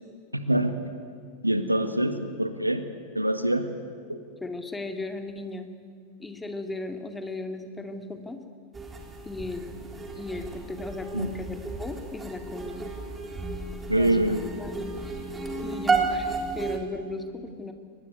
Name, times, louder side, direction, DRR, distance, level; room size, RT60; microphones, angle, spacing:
voice 1, 0.3-0.7 1.4-2.8 3.1-3.7 4.1-4.2 11.1-11.3 13.9-14.5, right 1 dB, 85° right, 9 dB, 1.7 m, -25 dB
voice 2, 4.4-5.7 6.2-8.4 9.3-9.7 10.1-12.9 14.0-14.3 14.6-15.0 15.6-17.7, left 2 dB, 10° left, 6 dB, 2.3 m, -36 dB
sound 1, 8.7-16.8, right 4 dB, 15° right, 3.6 m, -32 dB
23.0 x 20.5 x 9.5 m, 2.1 s
figure-of-eight pair, 90°, 0 cm